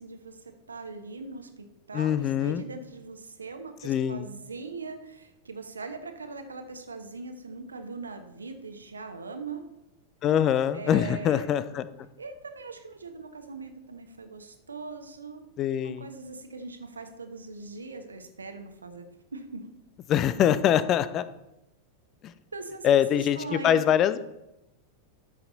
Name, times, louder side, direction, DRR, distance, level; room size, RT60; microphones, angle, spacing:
voice 1, 0.0-9.7 10.7-11.5 12.2-15.5 15.8-19.0 19.3-19.7 22.5-23.8, right 4 dB, 75° right, 7 dB, 1.1 m, -41 dB
voice 2, 1.9-2.6 3.8-4.3 10.2-11.9 15.6-16.0 20.1-21.3 22.2-22.3 22.8-24.2, left 9 dB, 30° left, 15 dB, 0.5 m, -24 dB
13.0 x 5.9 x 4.0 m, 0.91 s
figure-of-eight pair, 90°, 0 cm